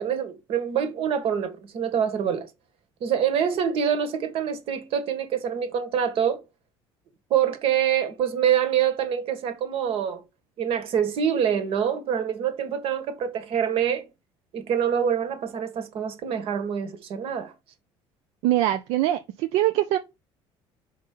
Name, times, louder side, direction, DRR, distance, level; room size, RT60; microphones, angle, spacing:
voice 1, 0.0-2.5 3.0-6.4 7.3-10.2 10.6-14.1 14.5-17.5, right 8 dB, 60° right, 1.5 m, -25 dB
voice 2, 18.4-20.0, right 14 dB, 80° right, 0.6 m, -23 dB
5.4 x 3.9 x 5.4 m
cardioid pair, 115°, 11 cm